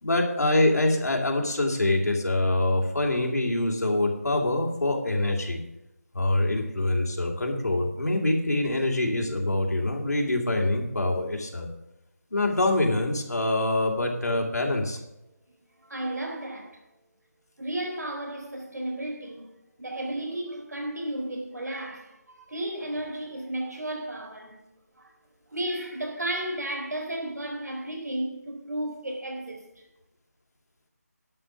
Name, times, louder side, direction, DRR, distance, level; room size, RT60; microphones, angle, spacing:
voice 1, 0.0-5.6 6.1-11.7 12.3-15.0, left 2 dB, 75° left, 2.7 m, -25 dB
voice 2, 15.8-16.8 17.6-19.5 19.8-24.6 24.9-25.1 25.5-29.8, right 1 dB, 90° right, 3.9 m, -33 dB
11.0 x 6.4 x 7.1 m
figure-of-eight pair, 175°, 9 cm